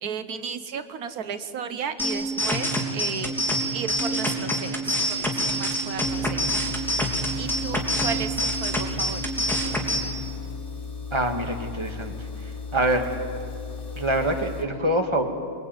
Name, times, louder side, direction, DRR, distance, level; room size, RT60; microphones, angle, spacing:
voice 1, 0.0-2.7 2.9-3.3 3.7-6.6 7.4-8.3 8.6-9.2, right 7 dB, 80° right, 10 dB, 1.5 m, -34 dB
sound 1, 2.0-10.0, equal, ahead, 3.2 m, -26 dB
sound 2, 6.0-14.6, left 4 dB, 35° left, 2.7 m, -36 dB
voice 2, 11.1-12.2 12.7-13.1 14.0-15.2, right 1 dB, 20° right, 4 dB, 2.1 m, -24 dB
27.0 x 22.0 x 9.3 m, 2.4 s
omnidirectional pair, 1.6 m